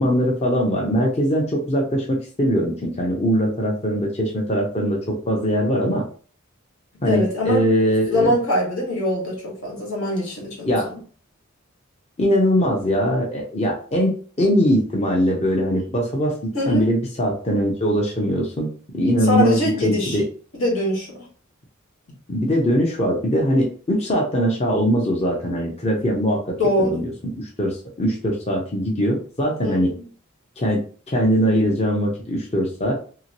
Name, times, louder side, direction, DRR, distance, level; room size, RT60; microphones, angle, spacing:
voice 1, 0.0-6.1 7.0-8.3 10.7-10.9 12.2-20.2 22.3-27.1 27.4-29.9 30.6-32.9, equal, 30° left, -1 dB, 0.6 m, -21 dB
voice 2, 7.0-7.7 8.1-11.0 16.5-16.9 19.3-20.2 20.5-21.2 26.6-27.0 29.6-29.9, left 1 dB, 80° left, -3 dB, 1.5 m, -23 dB
2.9 x 2.8 x 2.8 m, 0.42 s
head